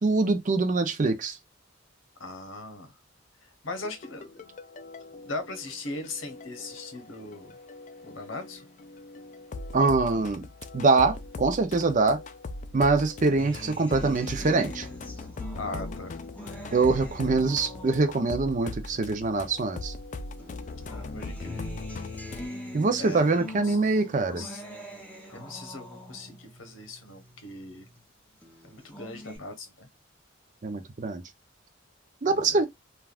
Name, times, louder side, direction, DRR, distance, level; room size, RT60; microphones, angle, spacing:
voice 1, 0.0-1.4 9.7-10.4 10.7-12.2 12.7-14.9 16.7-19.9 22.7-24.4 30.6-31.2 32.2-32.7, right 3 dB, 40° right, 0.5 m, -24 dB
voice 2, 2.2-2.9 3.6-4.3 5.2-7.6 8.0-8.6 10.0-10.3 15.6-16.1 20.8-21.6 23.0-23.2 23.6-24.6 25.3-27.9 28.7-29.9 32.4-32.6, left 2 dB, 80° left, 1.0 m, -39 dB
sound 1, 3.7-22.5, left 2 dB, 40° left, 0.3 m, -40 dB
Acoustic guitar, 13.4-20.0 20.4-28.0 28.4-29.4, left 1 dB, 10° left, 0.7 m, -44 dB
3.3 x 2.3 x 2.3 m
head